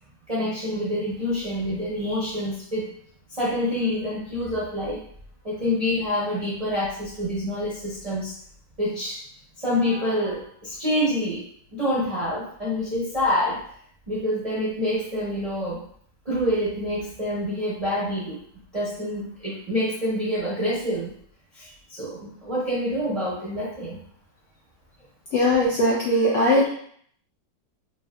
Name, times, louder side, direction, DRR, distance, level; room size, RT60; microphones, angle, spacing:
voice 1, 0.3-2.9 3.3-5.0 5.4-8.3 8.8-9.2 9.6-11.4 11.7-13.7 14.1-15.8 16.2-18.4 18.7-21.1 21.5-24.0, left 1 dB, 45° right, -8 dB, 0.4 m, -27 dB
voice 2, 25.3-26.7, left 1 dB, 80° left, -5 dB, 0.7 m, -20 dB
3.2 x 2.7 x 2.2 m, 0.63 s
omnidirectional pair, 1.9 m